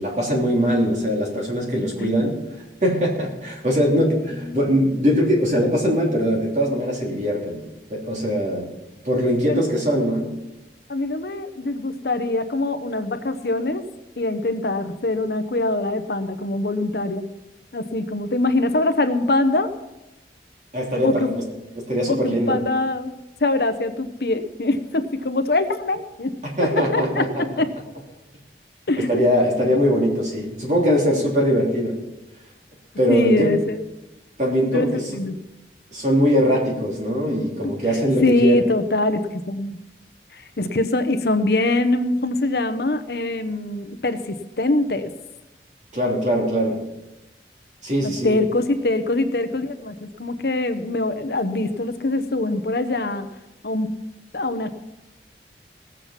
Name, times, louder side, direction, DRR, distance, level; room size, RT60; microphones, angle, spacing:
voice 1, 0.0-2.4 2.8-7.6 7.9-8.7 9.0-10.3 20.7-21.4 21.9-22.6 26.6-27.4 29.1-32.0 33.0-33.5 34.4-35.0 35.9-38.6 45.9-46.8 47.8-48.4, equal, 40° right, -2 dB, 3.3 m, -21 dB
voice 2, 2.0-2.3 4.4-4.9 9.5-9.8 10.9-13.9 14.2-17.3 17.7-19.7 21.0-21.4 22.1-26.3 26.6-27.7 28.9-29.2 30.8-31.0 33.1-33.8 34.7-35.4 37.6-39.8 40.3-45.1 48.0-53.3 53.6-53.9 54.3-54.7, left 2 dB, 60° left, 9 dB, 0.8 m, -23 dB
18.5 x 7.7 x 5.8 m, 1.0 s
head